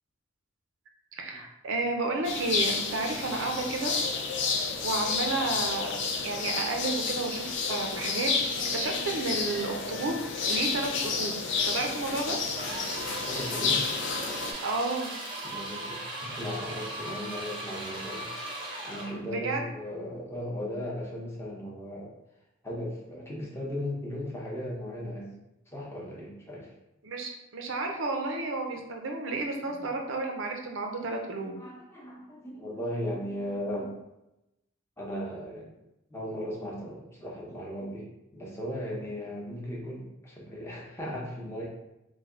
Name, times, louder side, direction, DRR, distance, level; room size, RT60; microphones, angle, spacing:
voice 1, 1.2-4.0 4.8-6.0 6.2-8.3 8.7-11.4 11.6-12.4 14.6-15.1 19.2-19.6 27.0-31.5, right 3 dB, 70° right, 2 dB, 0.5 m, -31 dB
sound 1, 2.2-14.5, left 4 dB, 60° left, 0.4 m, -30 dB
sound 2, 12.5-19.2, right 1 dB, 25° right, 0.6 m, -38 dB
voice 2, 13.3-13.9 15.4-18.3 18.8-22.1 22.6-25.3 25.7-26.7 29.7-29.9 31.6-33.9 35.0-35.7 36.1-41.7, equal, 10° left, -4 dB, 0.7 m, -37 dB
3.2 x 2.2 x 3.7 m, 0.91 s
head